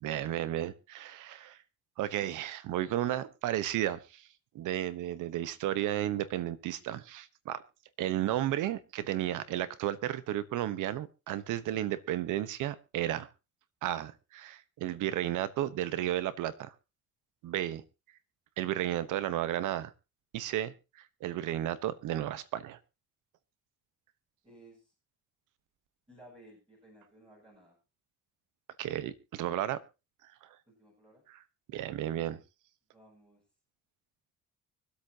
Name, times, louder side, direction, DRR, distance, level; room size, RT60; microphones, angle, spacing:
voice 1, 0.0-1.6 2.0-4.2 4.5-7.6 8.0-13.3 13.8-16.7 17.4-17.8 18.6-19.9 20.3-20.7 21.2-22.8 28.8-29.8 31.3-31.4 31.7-32.4, right 13 dB, 90° right, 15 dB, 1.1 m, -33 dB
voice 2, 24.4-24.9 26.1-27.8 30.7-31.2 32.9-33.4, right 1 dB, 15° right, -5 dB, 7.8 m, -57 dB
24.5 x 8.4 x 2.8 m, 0.29 s
cardioid pair, 90°, 30 cm